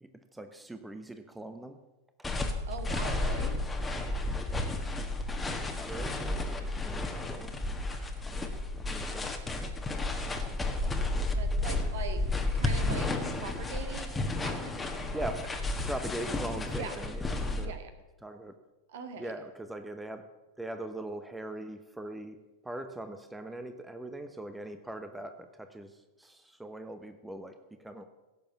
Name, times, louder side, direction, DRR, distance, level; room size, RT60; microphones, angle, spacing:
voice 1, 0.0-1.8 2.2-2.3 5.8-7.6 8.2-9.7 15.1-15.5 15.8-17.1 17.5-17.7 18.2-18.5 19.2-20.2 20.6-22.4 22.6-28.0, right 1 dB, 5° right, 8 dB, 0.9 m, -41 dB
sound 1, 2.2-17.7, left 2 dB, 10° left, 1.5 m, -32 dB
voice 2, 2.7-3.6 11.3-12.2 12.5-15.3 16.8-16.9 17.6-17.9 18.9-19.3, right 5 dB, 60° right, 7 dB, 1.9 m, -42 dB
17.0 x 7.2 x 7.1 m, 1.1 s
figure-of-eight pair, 90°, 0 cm